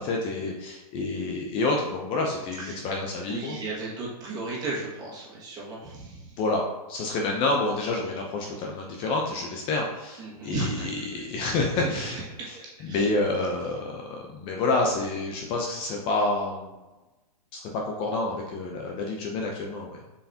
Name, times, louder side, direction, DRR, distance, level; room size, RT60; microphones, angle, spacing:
voice 1, 0.0-3.6 6.4-16.7 17.5-20.0, left 2 dB, 25° left, 0 dB, 0.7 m, -28 dB
voice 2, 3.3-6.2 10.2-10.9 11.8-12.2 12.5-13.0, right 3 dB, 20° right, -5 dB, 1.8 m, -35 dB
7.1 x 4.8 x 2.8 m, 1.1 s
hypercardioid pair, 150°, 19 cm